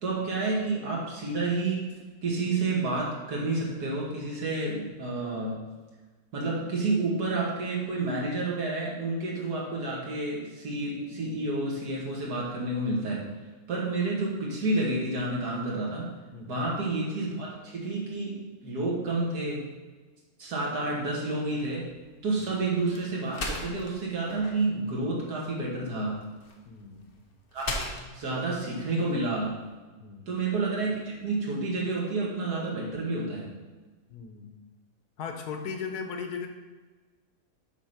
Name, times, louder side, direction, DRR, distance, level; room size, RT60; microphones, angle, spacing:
voice 1, 0.0-5.6 6.3-13.3 13.7-16.1 16.5-19.6 20.4-21.9 22.2-26.2 27.5-29.6 30.3-33.5, right 2 dB, 80° right, -4 dB, 2.2 m, -30 dB
sound 1, 21.5-29.7, left 2 dB, 40° left, 1.0 m, -40 dB
voice 2, 26.6-27.1 30.0-30.3 34.1-34.5 35.2-36.5, left 6 dB, 90° left, 5 dB, 1.4 m, -37 dB
8.3 x 3.9 x 5.7 m, 1.3 s
omnidirectional pair, 1.6 m